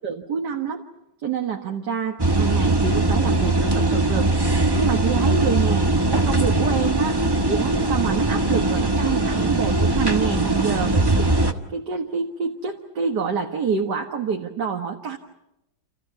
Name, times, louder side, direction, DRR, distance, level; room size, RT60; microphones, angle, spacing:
voice 1, 0.0-0.8 1.2-4.3 4.7-5.9 6.1-7.2 7.5-11.3 11.7-15.2, right 6 dB, 60° right, 2 dB, 2.1 m, -27 dB
sound 1, 2.2-11.5, right 2 dB, 15° right, 1.2 m, -20 dB
29.5 x 28.5 x 5.9 m, 0.88 s
omnidirectional pair, 2.0 m